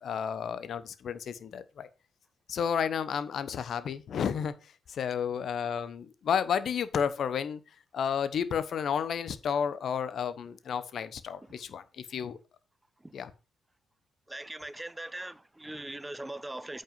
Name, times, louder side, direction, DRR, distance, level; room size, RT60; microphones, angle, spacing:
voice 1, 0.0-1.9 2.5-4.5 4.9-7.6 7.9-12.4 13.1-13.3, left 7 dB, 60° left, 1.0 m, -31 dB
voice 2, 14.3-16.8, right 1 dB, 15° right, 0.6 m, -40 dB
8.8 x 5.5 x 5.6 m
hypercardioid pair, 50°, 0 cm